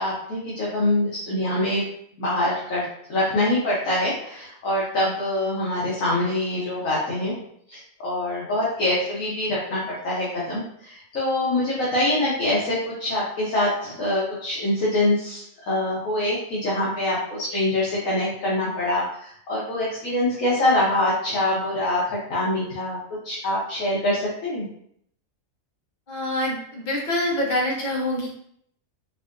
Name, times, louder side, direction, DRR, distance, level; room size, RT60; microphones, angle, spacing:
voice 1, 0.0-1.8 2.2-2.8 3.1-7.3 7.7-23.0 23.2-24.7, left 1 dB, 75° left, -6 dB, 1.4 m, -24 dB
voice 2, 26.1-28.3, left 1 dB, 40° left, -2 dB, 0.9 m, -25 dB
4.7 x 2.7 x 2.5 m, 0.68 s
omnidirectional pair, 1.4 m